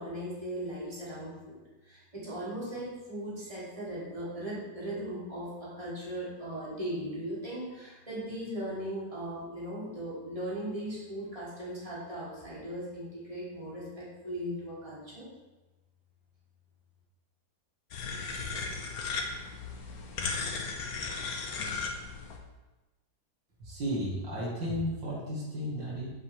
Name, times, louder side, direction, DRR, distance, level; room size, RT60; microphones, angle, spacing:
voice 1, 0.0-15.3, right 1 dB, 20° right, -8 dB, 2.8 m, -38 dB
sound 1, 17.9-22.4, left 4 dB, 60° left, 1.3 m, -36 dB
voice 2, 23.6-26.1, equal, 80° right, -5 dB, 2.5 m, -33 dB
7.8 x 7.4 x 3.4 m, 1.1 s
omnidirectional pair, 2.0 m